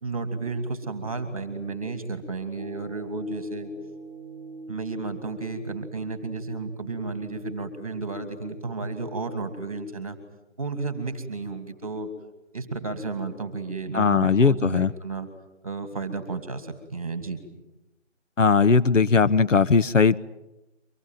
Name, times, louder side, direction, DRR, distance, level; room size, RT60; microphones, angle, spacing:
voice 1, 0.0-3.7 4.7-10.2 10.6-12.1 12.5-15.3 15.6-17.4, right 3 dB, 10° right, 10 dB, 2.1 m, -32 dB
sound 1, 2.6-8.1, right 1 dB, 15° left, 2.5 m, -43 dB
voice 2, 13.9-14.9 18.4-20.2, left 5 dB, 90° left, 15 dB, 1.1 m, -19 dB
24.5 x 22.0 x 9.1 m, 0.99 s
figure-of-eight pair, 175°, 36 cm